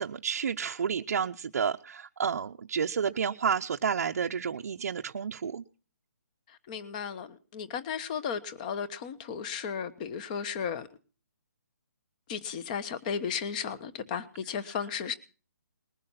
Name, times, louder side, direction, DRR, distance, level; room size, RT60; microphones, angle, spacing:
voice 1, 0.0-5.6, right 7 dB, 60° right, 0.7 m, -30 dB
voice 2, 6.5-10.9 12.3-15.1, left 7 dB, 25° left, 1.1 m, -35 dB
20.5 x 11.0 x 5.7 m
hypercardioid pair, 165°, 9 cm